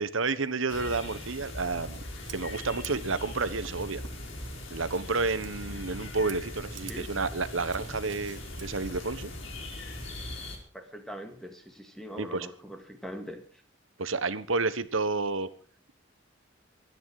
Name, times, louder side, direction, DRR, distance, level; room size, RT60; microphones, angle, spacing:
voice 1, 0.0-2.0 2.3-4.0 4.7-9.3 12.2-12.5 14.0-15.5, right 3 dB, 85° right, 14 dB, 1.3 m, -30 dB
sound 1, 0.7-10.6, left 1 dB, 75° left, 5.0 m, -40 dB
Scissors, 0.9-9.1, right 8 dB, 65° right, 1.5 m, -51 dB
voice 2, 10.7-13.4, equal, ahead, 5 dB, 2.1 m, -42 dB
24.5 x 10.0 x 4.9 m, 0.42 s
head